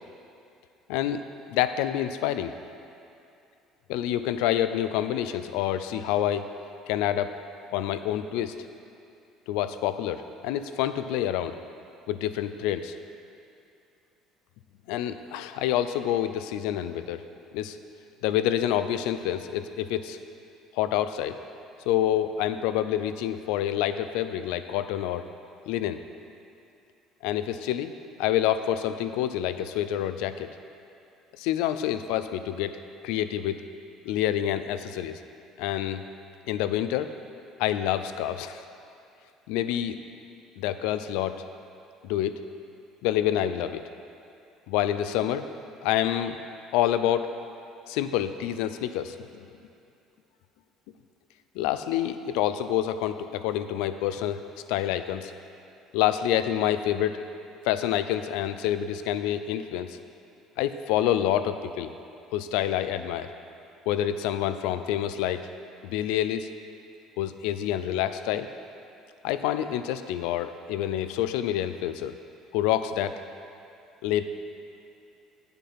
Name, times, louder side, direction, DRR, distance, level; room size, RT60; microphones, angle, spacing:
voice 1, 0.9-1.2 1.5-2.5 3.9-6.5 6.9-7.3 7.7-8.5 9.5-11.6 12.1-12.9 14.9-17.2 17.5-17.8 18.2-20.2 20.7-21.4 21.9-25.3 25.7-26.0 27.2-27.9 28.2-30.5 31.4-32.8 33.0-33.6 34.1-35.2 35.6-36.0 36.5-37.1 37.6-38.6 39.5-40.0 40.6-41.4 42.0-42.4 43.0-43.8 44.7-45.5 45.8-46.4 46.7-47.3 47.9-49.2 51.6-54.4 54.7-55.3 55.9-57.2 57.6-60.0 60.6-61.9 62.3-63.3 63.9-65.5 65.8-66.5 67.2-68.5 69.2-72.1 72.5-73.2 74.0-74.2, left 11 dB, 85° left, 11 dB, 0.4 m, -27 dB
8.5 x 6.9 x 5.6 m, 2.6 s
supercardioid pair, 100°, 0 cm